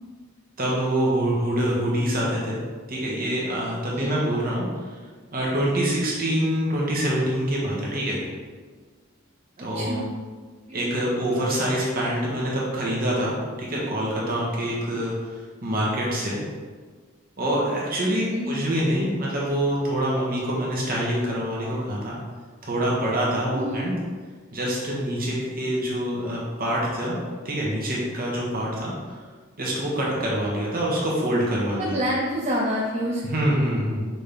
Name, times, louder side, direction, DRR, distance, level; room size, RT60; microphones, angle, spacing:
voice 1, 0.6-2.6 2.9-4.7 5.3-8.2 9.6-10.0 10.7-15.1 15.6-16.4 17.4-22.2 22.6-23.9 24.5-27.2 27.4-28.9 29.6-31.9 33.2-34.1, right 1 dB, 45° right, -5 dB, 1.7 m, -25 dB
voice 2, 9.6-10.1 10.7-10.9 18.3-18.6 23.5-23.8 31.8-33.5, equal, 30° right, -3 dB, 0.6 m, -28 dB
6.1 x 4.4 x 3.6 m, 1.5 s
head